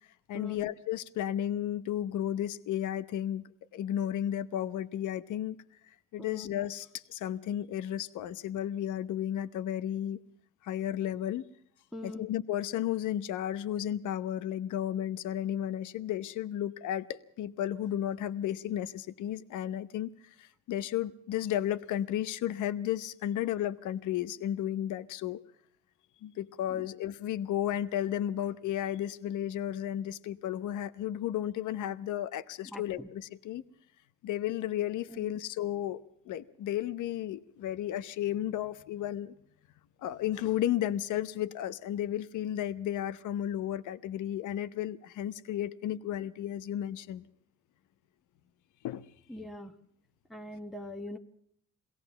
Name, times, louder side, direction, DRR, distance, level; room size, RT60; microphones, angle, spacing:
voice 1, 0.3-3.4 3.7-5.6 6.1-10.2 10.6-11.4 12.0-20.1 20.4-25.4 26.2-33.6 34.2-39.3 40.0-47.3 48.8-49.1, left 11 dB, 80° left, 14 dB, 0.9 m, -33 dB
voice 2, 11.9-12.2 26.7-26.8 32.7-33.1 35.1-35.2 49.3-49.7 50.3-51.2, left 1 dB, ahead, 3 dB, 1.2 m, -42 dB
22.5 x 17.0 x 6.9 m, 0.66 s
cardioid pair, 90°, 30 cm